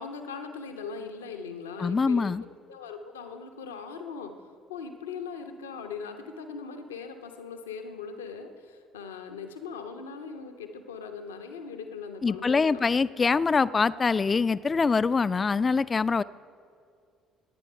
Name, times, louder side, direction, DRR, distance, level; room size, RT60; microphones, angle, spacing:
voice 1, 0.0-4.3 4.7-12.9, left 5 dB, 85° left, 6 dB, 0.9 m, -40 dB
voice 2, 1.8-2.4 12.2-16.2, left 4 dB, 30° left, 17 dB, 0.4 m, -24 dB
19.0 x 9.1 x 5.5 m, 2.2 s
hypercardioid pair, 55°, 0 cm